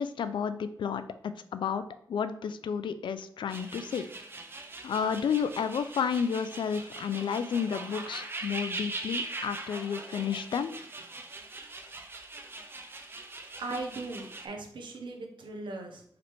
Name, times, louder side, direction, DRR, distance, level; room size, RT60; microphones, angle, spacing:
voice 1, 0.0-1.8 2.1-4.1 4.8-10.7, left 7 dB, 85° left, 11 dB, 0.3 m, -31 dB
sound 1, 3.5-14.5, right 3 dB, 30° right, 0.5 m, -41 dB
voice 2, 13.6-16.0, right 2 dB, 85° right, 3 dB, 0.8 m, -38 dB
4.8 x 3.2 x 3.4 m, 0.64 s
wide cardioid pair, 155°, 8 cm